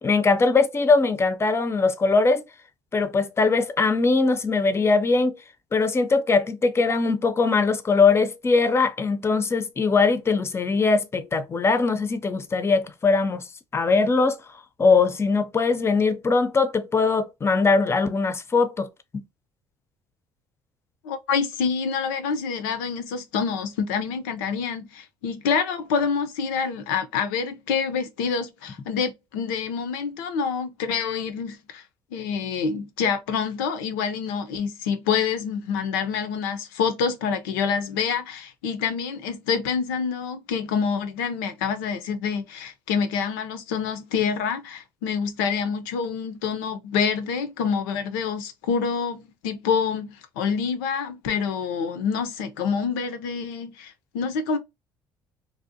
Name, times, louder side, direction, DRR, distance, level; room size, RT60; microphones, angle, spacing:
voice 1, 0.0-2.4 2.9-5.3 5.7-13.5 13.7-14.4 14.8-18.9, left 4 dB, 25° left, 0.5 m, -21 dB
voice 2, 21.0-31.8 32.1-54.6, left 6 dB, 85° left, 0.5 m, -27 dB
2.6 x 2.0 x 2.6 m
hypercardioid pair, 70°, 10 cm